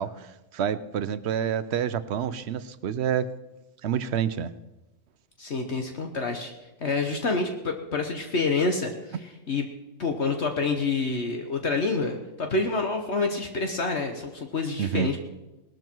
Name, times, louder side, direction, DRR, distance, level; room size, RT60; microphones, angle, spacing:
voice 1, 0.0-3.3 3.8-4.5 14.8-15.1, right 8 dB, 60° right, 15 dB, 0.9 m, -28 dB
voice 2, 5.4-6.5 6.8-9.7 10.0-15.2, left 3 dB, 60° left, 4 dB, 1.5 m, -27 dB
19.0 x 13.0 x 4.6 m, 1.0 s
omnidirectional pair, 1.3 m